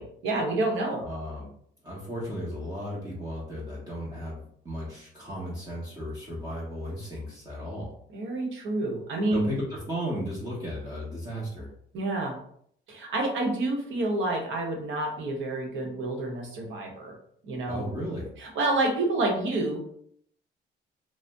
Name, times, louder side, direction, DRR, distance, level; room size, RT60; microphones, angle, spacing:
voice 1, 0.0-1.1 8.1-9.5 11.9-12.4 12.9-17.1 17.4-17.8 18.4-19.8, right 2 dB, 75° right, 1 dB, 0.9 m, -28 dB
voice 2, 1.0-1.5 1.8-7.9 9.3-11.7 17.7-18.3, equal, 20° right, -6 dB, 0.8 m, -35 dB
2.6 x 2.0 x 3.3 m, 0.67 s
cardioid pair, 90°, 20 cm